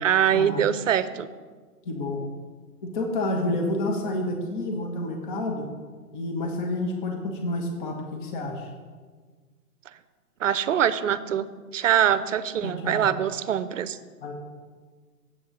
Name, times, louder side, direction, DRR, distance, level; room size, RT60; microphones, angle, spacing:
voice 1, 0.0-1.3 10.4-14.0, right 9 dB, 55° right, 15 dB, 0.6 m, -23 dB
voice 2, 1.8-2.2 2.8-5.7 6.1-8.7 12.6-13.1 14.2-14.3, left 2 dB, 30° left, 3 dB, 1.2 m, -29 dB
8.0 x 6.4 x 7.4 m, 1.5 s
hypercardioid pair, 140°, 47 cm